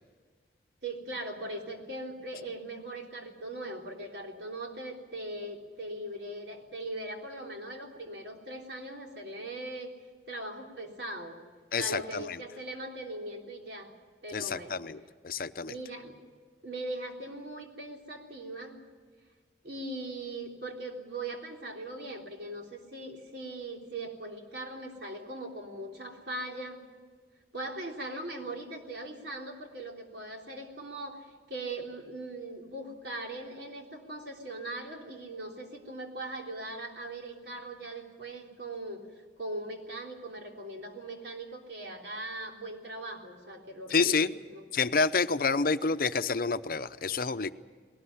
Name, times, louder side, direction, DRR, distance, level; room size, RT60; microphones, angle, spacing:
voice 1, 0.8-9.9 10.3-11.4 11.8-13.9 14.2-14.7 15.6-16.2 16.6-18.8 19.6-26.8 27.5-39.0 39.4-44.2 44.5-44.6, right 2 dB, 75° right, 1 dB, 3.5 m, -40 dB
voice 2, 11.7-12.4 14.3-15.7 43.9-44.3 44.7-47.5, left 4 dB, 50° left, 11 dB, 0.7 m, -28 dB
20.5 x 19.0 x 9.9 m, 1.5 s
head